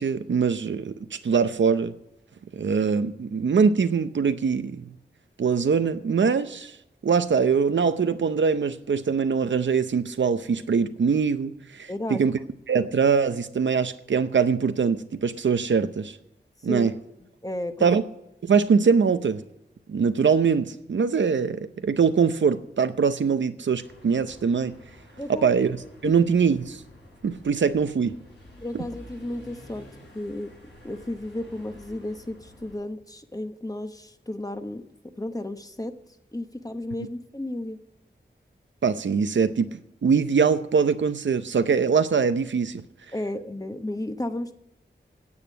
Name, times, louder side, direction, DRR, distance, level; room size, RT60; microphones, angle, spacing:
voice 1, 0.0-1.9 2.6-4.8 5.4-6.7 7.0-12.4 12.7-16.2 16.6-16.9 17.8-18.0 18.4-19.4 19.9-24.7 25.3-25.8 26.0-26.8 27.2-28.2 28.7-28.8 38.8-42.8, right 6 dB, 80° right, 0.7 m, -23 dB
voice 2, 11.9-12.3 16.6-16.9 17.4-17.9 25.2-25.5 26.0-26.1 28.6-29.9 30.1-30.5 30.8-34.8 35.2-35.9 36.3-37.8 43.1-44.5, left 1 dB, 20° left, 1.1 m, -33 dB
sound 1, 23.8-32.8, left 1 dB, 90° left, 5.0 m, -49 dB
9.7 x 8.2 x 8.6 m
wide cardioid pair, 50°, 19 cm